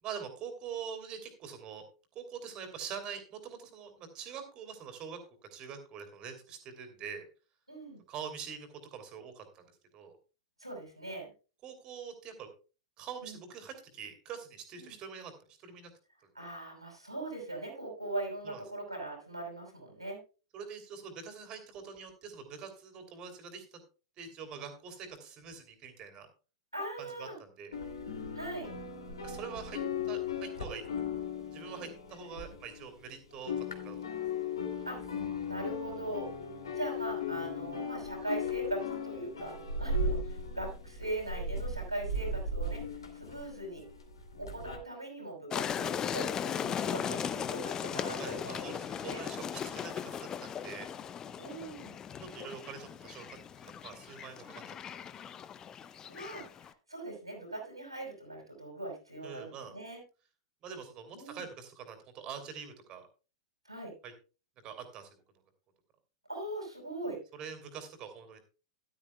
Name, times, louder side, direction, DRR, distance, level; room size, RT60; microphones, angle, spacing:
voice 1, 0.0-1.8 2.1-5.2 5.5-7.2 8.1-9.6 9.9-10.1 11.6-12.5 13.0-15.3 15.6-15.9 18.4-18.6 20.5-23.8 24.2-26.3 27.2-27.7 29.2-29.8 30.0-30.8 31.5-34.1 48.2-50.9 52.2-54.7 59.2-59.7 60.6-63.1 64.0-64.1 64.6-65.1 67.4-68.4, right 6 dB, 35° right, 7 dB, 2.9 m, -44 dB
voice 2, 7.7-8.0 10.6-11.3 13.2-13.4 14.8-15.0 16.3-20.2 26.7-27.4 28.3-28.7 29.7-30.0 31.8-31.9 34.9-35.2 35.4-36.3 36.8-42.8 43.1-43.8 44.4-49.3 51.4-52.0 56.1-60.0 61.1-61.4 63.6-63.9 66.3-67.2, right 2 dB, 90° right, 1 dB, 5.6 m, -41 dB
sound 1, 27.7-33.1 33.3-44.8, left 3 dB, 70° left, 2.7 m, -37 dB
sound 2, 45.5-56.7, left 8 dB, 25° left, 0.6 m, -38 dB
13.5 x 12.0 x 2.3 m, 0.34 s
figure-of-eight pair, 95°, 3 cm